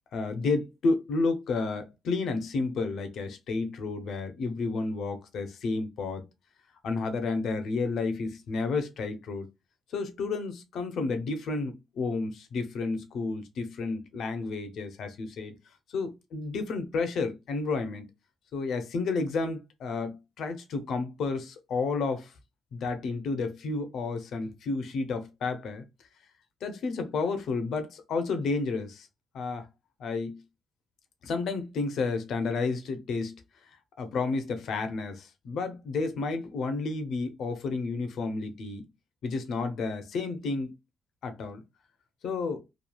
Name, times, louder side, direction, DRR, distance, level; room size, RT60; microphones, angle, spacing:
voice 1, 0.1-6.2 6.8-9.5 9.9-15.5 15.9-18.0 18.5-22.3 22.7-25.8 26.6-29.1 29.3-29.7 30.0-30.4 31.2-33.4 34.0-38.8 39.2-40.7 41.2-41.6 42.2-42.6, left 3 dB, 70° left, 0.7 m, -31 dB
3.1 x 2.3 x 2.3 m
cardioid pair, 90°, 0 cm